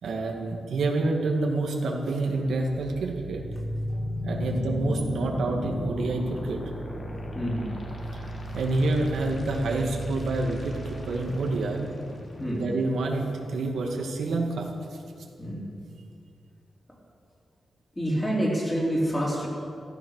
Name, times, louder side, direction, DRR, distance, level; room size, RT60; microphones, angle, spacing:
voice 1, 0.0-3.4 4.2-6.6 8.5-10.7 11.0-11.9 12.5-14.7, right 2 dB, 85° right, 1 dB, 2.2 m, -27 dB
sound 1, 2.3-14.3, equal, 35° left, 2.3 m, -36 dB
voice 2, 7.0-7.7 12.4-12.7 15.4-15.7 18.0-19.5, equal, 15° left, -3 dB, 3.8 m, -28 dB
14.5 x 14.5 x 6.6 m, 2.3 s
wide cardioid pair, 135°, 0 cm